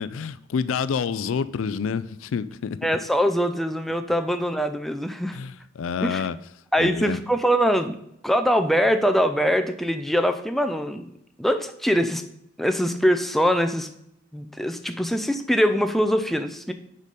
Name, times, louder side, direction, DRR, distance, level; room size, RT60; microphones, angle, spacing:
voice 1, 0.0-2.8 5.3-6.4 6.8-7.2, left 6 dB, 85° left, 0.4 m, -28 dB
voice 2, 2.8-5.4 6.0-6.2 6.7-8.0 8.2-11.1 11.4-12.2 12.6-13.9 14.3-16.7, equal, ahead, 0.4 m, -23 dB
6.5 x 4.9 x 5.3 m
head